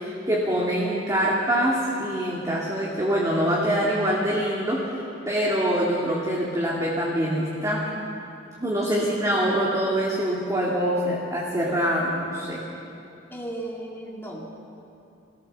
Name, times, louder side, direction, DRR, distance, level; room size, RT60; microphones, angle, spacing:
voice 1, 0.0-7.9 8.6-12.6, equal, 20° right, -4 dB, 2.7 m, -24 dB
voice 2, 13.3-14.5, right 1 dB, 10° left, -2 dB, 2.2 m, -35 dB
23.5 x 17.0 x 7.1 m, 2.7 s
head